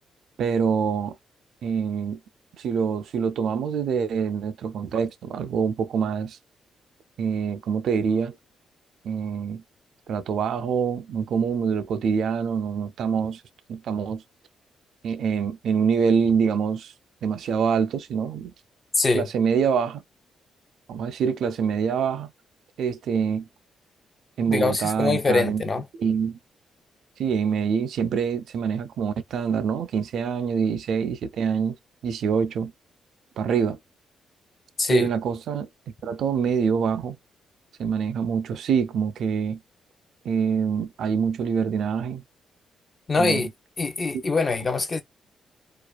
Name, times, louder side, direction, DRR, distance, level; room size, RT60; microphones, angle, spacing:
voice 1, 0.4-1.2 1.6-2.2 2.6-6.4 7.2-8.3 9.0-9.6 10.1-13.4 13.7-14.2 15.0-16.9 17.2-18.5 19.1-20.0 20.9-22.3 22.8-23.5 24.4-25.6 26.0-26.4 27.2-31.8 32.0-32.7 33.4-33.8 34.9-35.7 36.0-37.2 37.8-39.6 40.2-42.2 43.2-43.4, right 6 dB, 75° right, 0.3 m, -25 dB
voice 2, 18.9-19.3 24.5-25.9 34.8-35.1 43.1-43.5 43.8-45.0, left 3 dB, 30° left, 0.5 m, -23 dB
2.4 x 2.3 x 2.2 m
cardioid pair, 100°, 0 cm